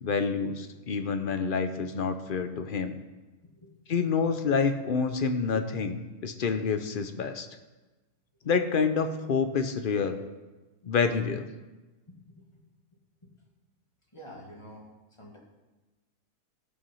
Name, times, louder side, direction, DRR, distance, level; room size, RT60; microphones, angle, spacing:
voice 1, 0.0-3.0 3.9-7.5 8.4-10.2 10.9-11.5, left 5 dB, 50° left, 8 dB, 0.6 m, -28 dB
voice 2, 12.1-12.6 13.2-13.3 14.1-14.9 15.2-15.4, equal, 20° left, -1 dB, 1.9 m, -48 dB
14.0 x 6.1 x 5.5 m, 1.2 s
omnidirectional pair, 1.6 m